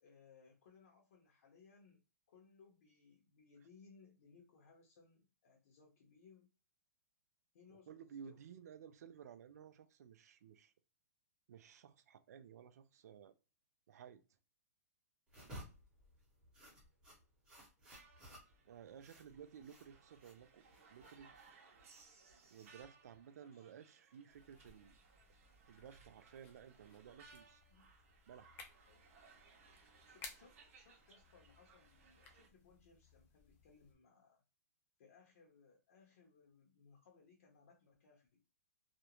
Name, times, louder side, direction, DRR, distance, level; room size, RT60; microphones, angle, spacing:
voice 1, 0.0-2.0 2.3-6.5 7.5-8.4 23.4-23.7 27.7-27.9 28.9-29.0 29.9-34.4 35.0-38.4, left 5 dB, 60° left, 0.8 m, -66 dB
voice 2, 7.7-10.7 11.5-13.3 13.9-14.2 18.7-20.6 20.9-21.3 22.5-25.0 25.7-27.6 28.3-28.6, right 8 dB, 75° right, 0.4 m, -56 dB
sound 1, 15.3-23.2, equal, 10° right, 0.9 m, -58 dB
sound 2, 17.9-32.5, right 4 dB, 60° right, 0.8 m, -65 dB
sound 3, 24.3-33.9, left 4 dB, 20° left, 0.5 m, -60 dB
2.5 x 2.1 x 2.9 m
hypercardioid pair, 160°, 9 cm